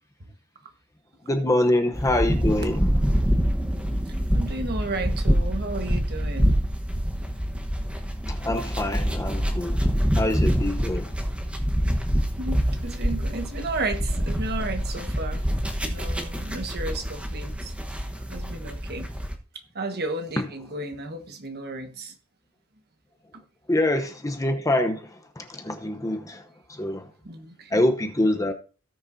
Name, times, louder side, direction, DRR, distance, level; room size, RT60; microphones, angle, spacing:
voice 1, 1.2-2.9 8.3-11.1 23.7-26.4 26.7-27.1 27.7-28.5, left 1 dB, 15° left, 0.8 m, -25 dB
sound 1, 1.9-19.3, equal, 5° right, 1.1 m, -26 dB
voice 2, 4.3-6.6 12.4-15.4 15.8-17.7 18.3-19.1 19.7-22.1 27.2-27.8, right 2 dB, 50° right, 1.4 m, -33 dB
18.0 x 6.5 x 2.7 m
head